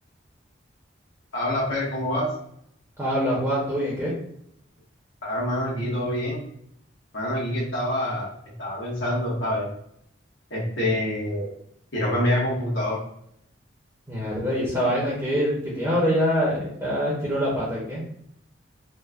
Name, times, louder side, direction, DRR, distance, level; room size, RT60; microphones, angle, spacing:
voice 1, 1.3-2.3 5.2-6.4 7.1-8.3 8.6-9.7 10.5-11.5 11.9-13.0, left 1 dB, 75° left, -5 dB, 1.1 m, -26 dB
voice 2, 3.0-4.1 14.1-18.0, equal, 15° right, -6 dB, 0.6 m, -24 dB
3.2 x 2.1 x 2.3 m, 0.72 s
head